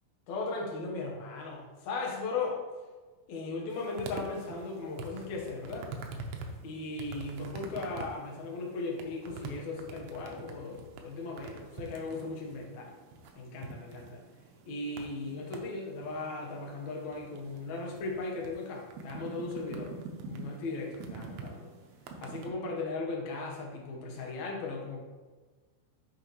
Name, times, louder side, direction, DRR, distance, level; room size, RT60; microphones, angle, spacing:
voice 1, 0.3-2.6 3.3-5.9 6.6-12.9 13.4-14.2 14.7-19.9 20.2-21.7 22.2-25.0, left 3 dB, 60° left, -1 dB, 2.1 m, -37 dB
sound 1, 3.7-22.5, right 4 dB, 85° right, 2.7 m, -46 dB
10.5 x 4.9 x 3.1 m, 1.3 s
omnidirectional pair, 4.5 m